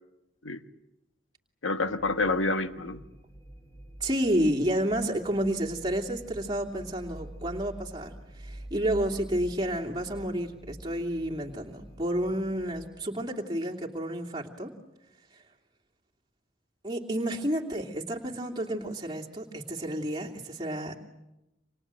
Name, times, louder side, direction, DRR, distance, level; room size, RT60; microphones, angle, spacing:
voice 1, 1.6-3.0, left 3 dB, 90° left, 9 dB, 1.3 m, -28 dB
sound 1, 1.8-12.8, right 1 dB, 15° left, 3.5 m, -47 dB
voice 2, 4.0-14.7 16.8-21.0, right 1 dB, 20° right, -1 dB, 2.8 m, -30 dB
29.0 x 26.5 x 7.6 m, 0.95 s
head